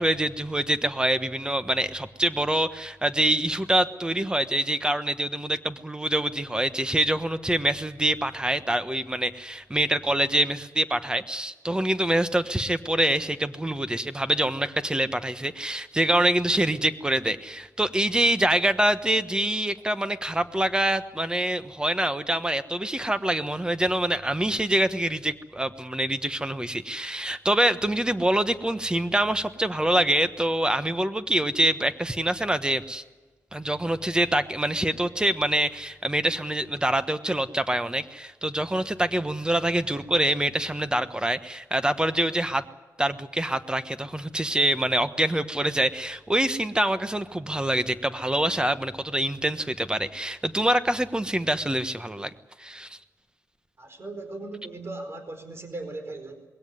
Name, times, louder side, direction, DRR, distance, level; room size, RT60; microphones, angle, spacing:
voice 1, 0.0-33.0 33.5-42.6 43.0-52.3 52.6-53.0, right 1 dB, 15° right, 12 dB, 1.2 m, -25 dB
voice 2, 53.8-56.5, right 2 dB, 40° right, 8 dB, 4.5 m, -38 dB
21.0 x 17.0 x 9.6 m, 1.3 s
cardioid pair, 80°, 7 cm